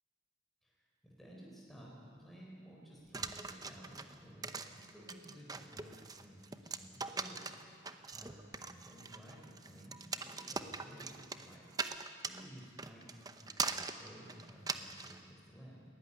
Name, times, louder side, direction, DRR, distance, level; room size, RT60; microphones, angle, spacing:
voice 1, 0.6-7.8 8.1-15.8, equal, ahead, -4 dB, 4.3 m, -55 dB
sound 1, 3.1-15.2, right 4 dB, 20° right, 0.8 m, -41 dB
20.5 x 17.0 x 9.9 m, 2.4 s
head